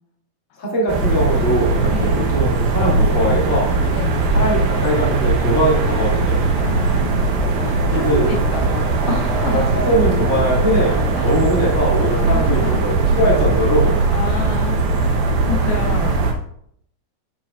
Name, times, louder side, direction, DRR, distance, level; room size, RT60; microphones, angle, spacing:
voice 1, 0.6-3.7 4.3-6.4 7.9-8.4 9.5-14.0, right 1 dB, 20° left, -5 dB, 2.3 m, -21 dB
sound 1, 0.9-16.3, right 3 dB, 70° right, 3.0 m, -19 dB
voice 2, 1.9-2.4 3.9-4.3 6.6-7.3 7.6-9.7 11.2-11.4 12.1-12.8 14.1-15.2 15.5-16.2, left 6 dB, 80° left, 2 dB, 2.9 m, -29 dB
11.0 x 7.6 x 2.5 m, 0.67 s
omnidirectional pair, 4.5 m